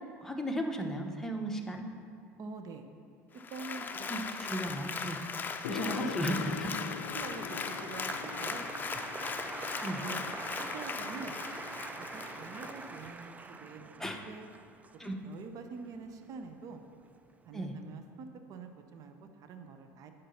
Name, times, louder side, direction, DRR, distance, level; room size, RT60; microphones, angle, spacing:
voice 1, 0.2-1.9 4.1-5.2 5.6-6.7 9.8-10.0 14.0-14.2 15.0-15.2 17.5-17.7, right 1 dB, 5° left, 2 dB, 1.0 m, -35 dB
voice 2, 2.4-2.8 3.3-4.9 5.8-6.4 6.8-8.7 10.0-10.2 10.6-11.3 12.0-14.5 15.2-16.8 17.4-20.1, right 4 dB, 50° right, 6 dB, 0.7 m, -46 dB
Applause, 3.4-13.1 13.6-13.7, left 5 dB, 25° left, 0.6 m, -39 dB
Gong, 5.6-13.1, left 10 dB, 85° left, 0.4 m, -44 dB
Applause 2, 6.9-16.7 17.0-17.6, right 4 dB, 20° right, 0.4 m, -45 dB
10.0 x 5.3 x 5.6 m, 2.4 s
hypercardioid pair, 85°, 7 cm